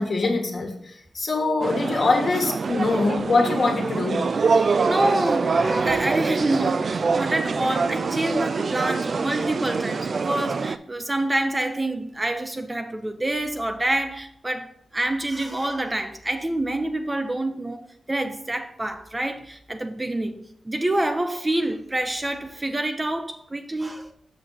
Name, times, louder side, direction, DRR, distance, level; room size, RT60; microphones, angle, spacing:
voice 1, 0.0-4.3, left 3 dB, 50° left, 1.5 m, -23 dB
sound 1, 1.6-10.8, right 4 dB, 55° right, 0.3 m, -25 dB
voice 2, 4.6-17.8 18.1-24.1, right 1 dB, 20° right, 0.6 m, -27 dB
6.5 x 6.1 x 4.0 m
wide cardioid pair, 110°, 0 cm